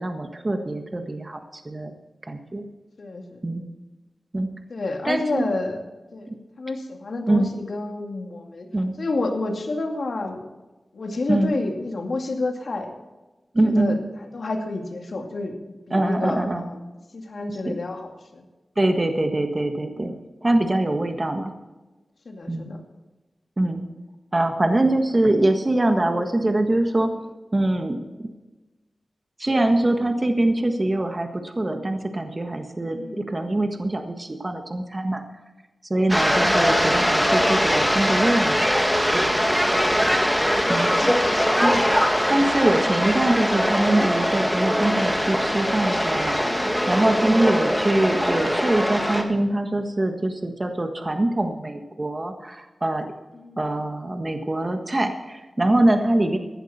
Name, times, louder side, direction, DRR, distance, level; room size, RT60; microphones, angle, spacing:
voice 1, 0.0-1.9 2.2-2.6 3.4-3.6 4.3-4.5 5.0-5.5 7.3-7.5 8.7-8.9 11.3-11.6 13.5-14.0 15.9-16.7 17.6-17.8 18.8-21.5 22.5-22.7 23.6-23.8 24.3-27.1 27.5-28.0 29.4-35.2 35.9-40.1 40.4-40.9 41.6-41.9 42.3-53.1 53.6-56.4, right 1 dB, 30° right, 5 dB, 1.6 m, -23 dB
voice 2, 3.0-3.4 4.7-5.8 6.1-6.3 6.6-8.7 9.0-10.4 10.9-12.9 13.6-14.0 14.3-15.5 15.9-16.8 17.1-18.1 18.3-18.4 20.0-20.2 22.3-22.8 33.0-33.3 36.2-36.6 40.9-41.1 42.3-42.4 46.4-46.7 53.3-53.6 56.0-56.1, left 2 dB, 70° left, 2 dB, 2.4 m, -29 dB
sound 1, 36.1-49.2, equal, ahead, 2.0 m, -21 dB
16.0 x 11.0 x 4.3 m, 1.1 s
wide cardioid pair, 75°, 0 cm